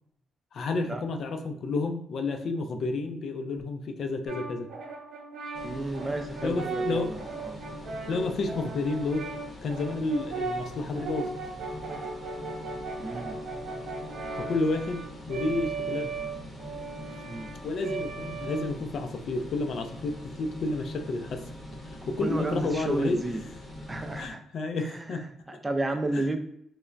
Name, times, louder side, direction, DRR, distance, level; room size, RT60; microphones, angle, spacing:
voice 1, 0.5-4.7 6.4-7.1 8.1-9.3 9.6-11.3 14.4-16.1 17.6-21.5 21.8-23.2 24.2-25.3 26.1-26.3, left 3 dB, 60° left, 6 dB, 0.4 m, -30 dB
Brass instrument, 4.3-19.1, right 3 dB, 70° right, 0.6 m, -37 dB
sound 1, 5.5-24.3, left 1 dB, 35° left, 0.8 m, -43 dB
voice 2, 5.6-7.2 7.4-7.6 13.0-13.4 17.3-17.5 22.2-23.4 23.9-24.4 24.8-26.4, right 2 dB, 20° right, 6 dB, 0.3 m, -32 dB
3.1 x 2.0 x 2.4 m, 0.71 s
cardioid pair, 90°, 0 cm